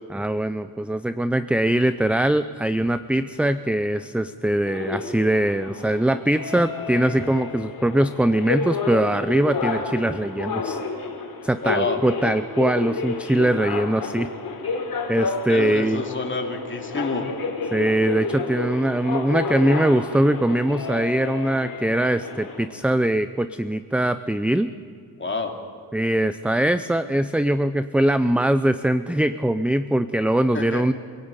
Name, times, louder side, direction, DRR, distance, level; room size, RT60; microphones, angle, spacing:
voice 1, 0.1-10.8 11.4-14.3 15.1-16.0 17.7-24.7 25.9-30.9, right 1 dB, 5° right, 12 dB, 0.5 m, -22 dB
sound 1, 4.7-22.7, left 4 dB, 55° left, 4.3 m, -30 dB
voice 2, 11.6-12.0 15.5-17.3 25.2-25.5 30.5-30.9, left 4 dB, 30° left, 2 dB, 3.1 m, -28 dB
26.5 x 17.0 x 9.0 m, 2.3 s
cardioid pair, 100°, 41 cm